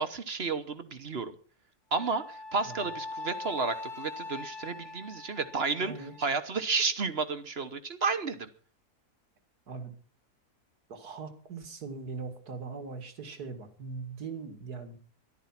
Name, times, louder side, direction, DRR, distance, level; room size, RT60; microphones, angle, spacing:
voice 1, 0.0-1.3 1.9-8.5, right 4 dB, 45° right, 11 dB, 1.2 m, -32 dB
Wind instrument woodwind instrument, 1.9-6.3, left 3 dB, 75° left, 2.1 m, -42 dB
voice 2, 5.8-6.1 9.7-9.9 10.9-15.0, right 4 dB, 80° right, 8 dB, 2.5 m, -40 dB
13.5 x 12.0 x 5.9 m, 0.42 s
omnidirectional pair, 1.7 m